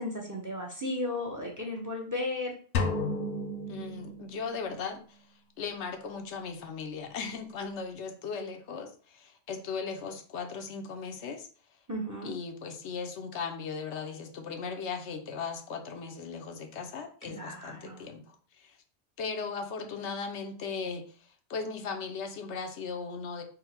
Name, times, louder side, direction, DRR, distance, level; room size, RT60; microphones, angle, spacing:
voice 1, 0.0-2.5 11.9-12.4 17.2-18.1, left 2 dB, 20° right, 0 dB, 0.6 m, -35 dB
sound 1, 2.7-4.8, left 3 dB, 65° left, 0.7 m, -33 dB
voice 2, 3.7-5.2 5.6-11.5 12.2-18.8 19.2-23.4, left 5 dB, 85° left, 5 dB, 1.0 m, -37 dB
3.9 x 2.1 x 4.2 m, 0.43 s
omnidirectional pair, 1.1 m